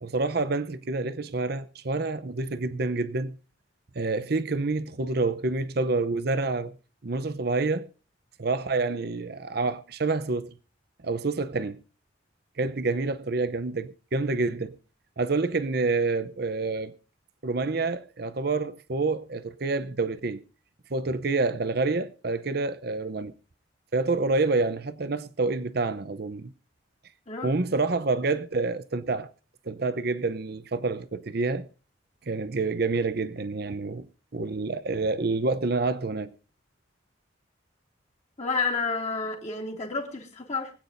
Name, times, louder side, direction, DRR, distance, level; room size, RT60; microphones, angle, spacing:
voice 1, 0.0-3.4 3.9-6.7 7.0-7.9 8.4-10.5 11.0-11.8 12.6-14.7 15.2-16.9 17.4-20.4 20.9-23.3 23.9-26.5 27.4-29.3 29.7-31.7 32.3-34.1 34.3-36.3, right 3 dB, 50° right, 0.7 m, -28 dB
voice 2, 27.3-27.6 38.4-40.7, left 4 dB, 35° left, 2.4 m, -30 dB
24.5 x 8.9 x 2.6 m
head